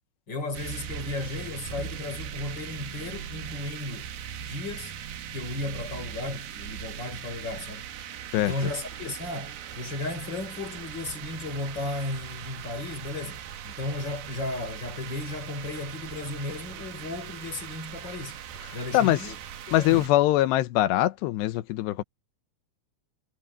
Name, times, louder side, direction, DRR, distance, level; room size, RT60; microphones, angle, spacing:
voice 1, 0.3-4.1 4.4-4.9 5.3-7.8 8.3-18.4 18.7-19.4 19.7-20.1, left 2 dB, 25° left, 4.6 m, -35 dB
sound 1, 0.5-20.1, right 9 dB, 65° right, 3.1 m, -40 dB
voice 2, 19.7-22.0, left 15 dB, 75° left, 2.8 m, -22 dB
omnidirectional pair, 5.3 m